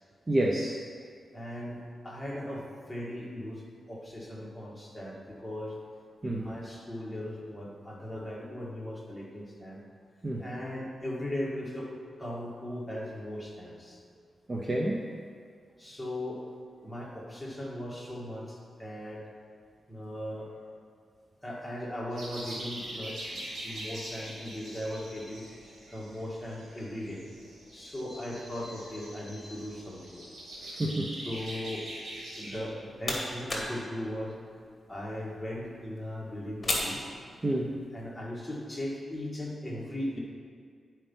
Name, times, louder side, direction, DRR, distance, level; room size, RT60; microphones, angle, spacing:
voice 1, 0.3-0.8 6.2-6.5 10.2-10.4 14.5-15.0 30.6-31.1 37.4-37.8, right 1 dB, 25° right, -1 dB, 0.5 m, -29 dB
voice 2, 1.3-5.8 6.2-9.8 10.4-11.9 12.2-14.0 15.8-16.5 16.8-19.2 19.9-20.5 21.4-25.5 25.9-27.3 27.7-30.2 31.2-31.9 32.3-34.4 34.9-37.0 37.9-40.2, left 1 dB, 5° left, -5 dB, 1.6 m, -38 dB
sound 1, 22.1-32.6, right 1 dB, 55° right, 2.4 m, -43 dB
sound 2, 32.5-37.8, left 1 dB, 20° left, 1.5 m, -38 dB
10.0 x 4.5 x 5.4 m, 2.1 s
wide cardioid pair, 145°, 0 cm